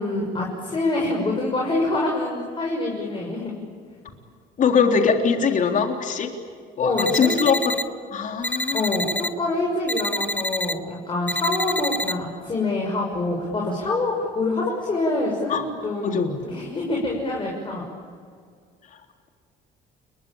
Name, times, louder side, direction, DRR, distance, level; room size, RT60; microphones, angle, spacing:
voice 1, 0.0-3.5 6.8-7.5 8.7-17.8, left 2 dB, 30° left, -1 dB, 6.3 m, -26 dB
voice 2, 4.6-6.3 6.8-7.7 8.1-8.8 15.5-15.6 16.0-16.3, left 6 dB, 50° left, 4 dB, 3.8 m, -21 dB
sound 1, 7.0-7.8 8.4-9.3 9.9-10.7 11.3-12.1, left 1 dB, 10° left, 1.2 m, -27 dB
30.0 x 22.5 x 8.9 m, 2.1 s
cardioid pair, 110°, 17 cm